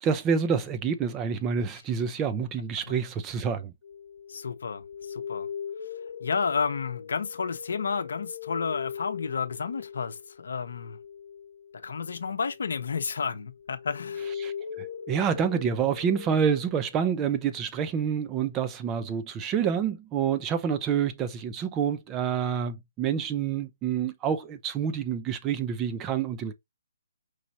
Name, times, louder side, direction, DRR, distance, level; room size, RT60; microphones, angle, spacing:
voice 1, 0.0-3.7 14.4-26.5, right 7 dB, 20° right, 0.5 m, -28 dB
sound 1, 3.8-13.2 13.5-17.3, left 7 dB, 50° left, 1.2 m, -40 dB
voice 2, 4.3-5.5 6.2-11.0 11.7-14.3, left 5 dB, 70° left, 0.8 m, -31 dB
4.6 x 3.0 x 2.7 m
hypercardioid pair, 145°, 0 cm